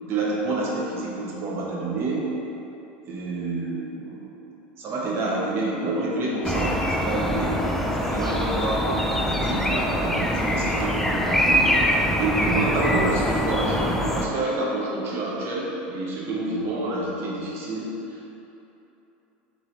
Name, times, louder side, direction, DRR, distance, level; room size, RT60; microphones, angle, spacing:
voice 1, 0.0-2.3 3.0-4.3 4.8-7.6 7.9-11.7 12.2-18.4, right 2 dB, 45° right, -4 dB, 0.8 m, -28 dB
sound 1, 6.4-14.3, equal, 5° left, 0.3 m, -24 dB
3.7 x 3.4 x 3.1 m, 2.9 s
hypercardioid pair, 105°, 6 cm